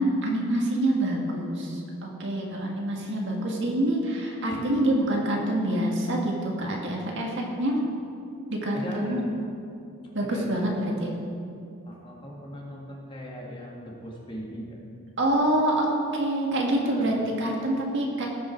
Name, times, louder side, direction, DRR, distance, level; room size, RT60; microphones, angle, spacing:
voice 1, 0.0-7.8 8.5-9.2 10.1-10.7 11.0-11.1 15.2-18.3, right 1 dB, 55° right, -1 dB, 1.8 m, -26 dB
voice 2, 8.7-9.3 10.2-11.0 11.8-14.8 16.7-17.2, equal, 25° left, -2 dB, 1.7 m, -39 dB
18.0 x 6.2 x 4.6 m, 2.5 s
head